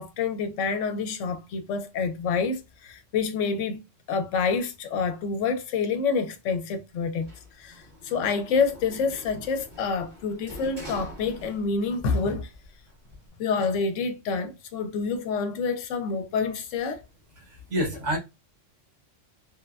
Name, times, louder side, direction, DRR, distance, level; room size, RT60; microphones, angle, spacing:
voice 1, 0.0-3.8 4.1-7.3 7.6-12.5 13.4-17.0, left 5 dB, 80° left, 0.9 m, -27 dB
Sliding door, 7.2-12.0 12.4-13.3, right 1 dB, 50° right, 1.5 m, -45 dB
voice 2, 17.4-18.2, equal, 80° right, 1.5 m, -28 dB
3.1 x 2.1 x 2.3 m
omnidirectional pair, 1.3 m